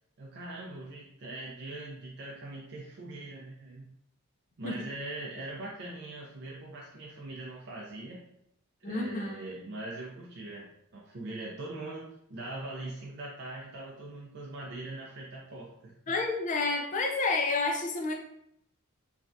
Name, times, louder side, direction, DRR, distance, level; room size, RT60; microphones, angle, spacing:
voice 1, 0.2-3.9 4.6-8.2 8.8-15.9, right 2 dB, 55° right, -4 dB, 0.5 m, -41 dB
voice 2, 8.8-9.4 16.1-18.2, left 3 dB, 35° left, 1 dB, 0.4 m, -29 dB
3.2 x 2.3 x 2.6 m, 0.74 s
head